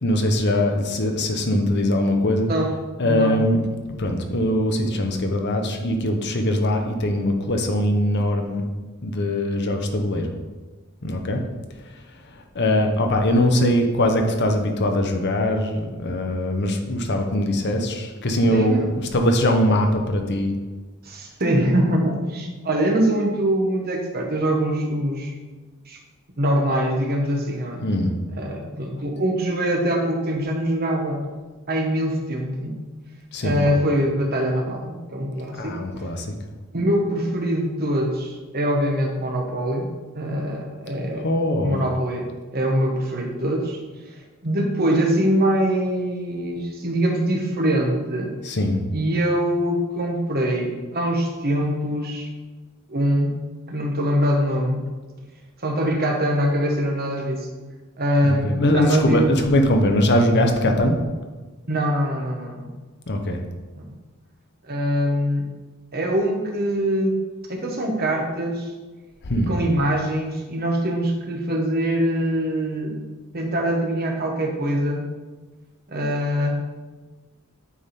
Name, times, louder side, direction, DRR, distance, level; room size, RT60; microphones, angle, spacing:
voice 1, 0.0-2.5 3.0-3.6 4.0-8.6 9.0-10.3 11.0-11.4 12.5-18.8 19.1-20.5 27.8-28.1 33.3-33.6 35.6-36.3 41.2-41.8 48.4-48.8 58.2-60.9 63.1-63.4 69.2-69.5, left 1 dB, 50° left, 4 dB, 0.8 m, -21 dB
voice 2, 3.0-3.4 18.5-18.9 21.0-25.3 25.9-26.0 26.4-27.9 28.3-31.2 31.7-32.8 33.4-35.8 36.7-41.3 41.6-42.3 42.5-43.8 44.1-48.3 48.9-52.3 52.9-53.4 53.7-54.8 55.6-57.5 58.0-59.4 61.7-62.7 63.8-63.9 64.6-65.4 65.9-67.2 67.5-68.7 69.4-73.0 73.3-75.1 75.9-76.6, right 1 dB, 45° right, 1 dB, 1.1 m, -23 dB
8.4 x 3.6 x 4.2 m, 1.3 s
head